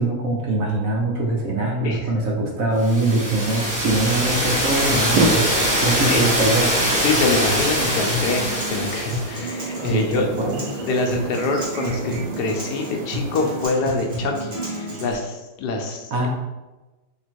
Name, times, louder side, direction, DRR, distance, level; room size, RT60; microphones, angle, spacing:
voice 1, 0.0-5.5 5.8-6.7 9.9-10.6 16.1-16.3, right 2 dB, 60° right, -1 dB, 1.1 m, -22 dB
sound 1, 2.8-9.3, equal, 15° right, 1.0 m, -23 dB
sound 2, 5.1-13.7, right 2 dB, 75° right, 1.3 m, -31 dB
voice 2, 7.0-10.4 10.8-16.3, left 3 dB, 75° left, 2 dB, 1.1 m, -25 dB
Acoustic guitar, 7.1-15.1, equal, 35° right, 1.1 m, -30 dB
3.7 x 2.9 x 4.4 m, 1.1 s
omnidirectional pair, 1.8 m